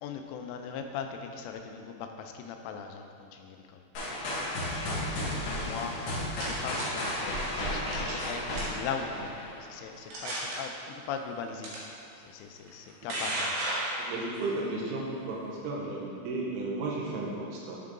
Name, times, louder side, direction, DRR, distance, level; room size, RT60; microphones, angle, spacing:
voice 1, 0.0-3.8 4.6-5.2 5.5-7.4 7.7-9.3 9.6-11.7 12.2-13.7, left 6 dB, 85° left, 4 dB, 3.0 m, -39 dB
sound 1, 3.9-9.8, left 1 dB, 60° left, 2.2 m, -33 dB
sound 2, 6.3-6.8 7.9-8.2 8.5-8.9 9.5-9.6 10.1-10.6 11.6-11.8 12.7-14.4, right 1 dB, 65° right, 2.3 m, -34 dB
voice 2, 14.0-17.8, right 2 dB, 85° right, -3 dB, 3.6 m, -34 dB
9.1 x 4.6 x 3.7 m, 2.8 s
omnidirectional pair, 5.6 m